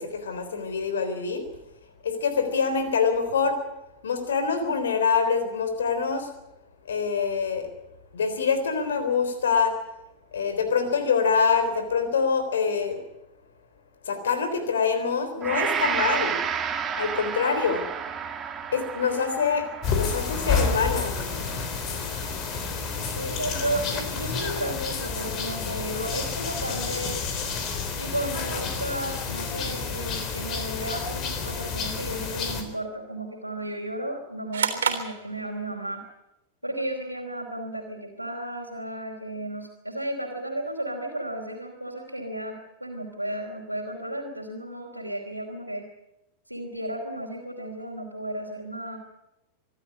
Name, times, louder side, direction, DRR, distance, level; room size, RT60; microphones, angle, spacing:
voice 1, 0.0-1.4 2.0-3.6 4.0-6.3 6.9-7.7 8.1-9.7 10.3-13.0 14.0-16.4 17.0-17.8 18.7-19.7 19.9-21.2, left 5 dB, 65° left, 9 dB, 3.7 m, -25 dB
Gong, 15.4-23.7 24.2-24.3, right 7 dB, 20° right, 2.3 m, -32 dB
sound 1, 19.8-32.6, left 5 dB, 35° left, 3.6 m, -30 dB
voice 2, 23.2-27.2 28.0-36.0 36.6-45.8 46.5-49.0, right 1 dB, 90° right, -1 dB, 3.1 m, -33 dB
sound 2, 34.5-35.9, right 7 dB, 65° right, 3.3 m, -29 dB
25.0 x 12.5 x 9.7 m, 0.92 s
figure-of-eight pair, 90°, 0 cm